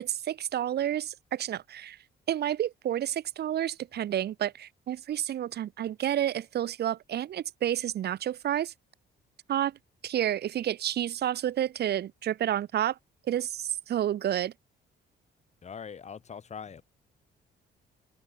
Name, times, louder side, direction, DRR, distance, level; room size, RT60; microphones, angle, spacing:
voice 1, 0.0-2.0 2.3-8.7 9.5-9.8 10.0-13.0 13.3-14.5, right 11 dB, 55° right, 0.6 m, -30 dB
voice 2, 15.6-16.8, left 6 dB, 35° left, 0.9 m, -42 dB
cardioid pair, 90°, 20 cm